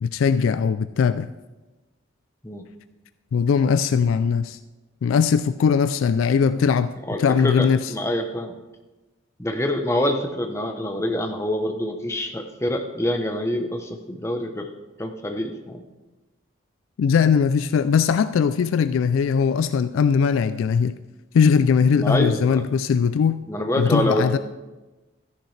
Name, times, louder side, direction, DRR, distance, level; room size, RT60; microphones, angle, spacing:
voice 1, 0.0-1.3 3.3-4.6 5.0-6.9 7.2-7.8 17.0-21.0 21.3-23.4 23.8-24.4, left 6 dB, 85° left, 13 dB, 0.3 m, -20 dB
voice 2, 7.1-8.5 9.4-14.7 15.0-15.8 22.0-22.6 23.5-24.4, left 1 dB, 15° left, 4 dB, 0.8 m, -26 dB
13.0 x 10.5 x 3.3 m, 1.1 s
head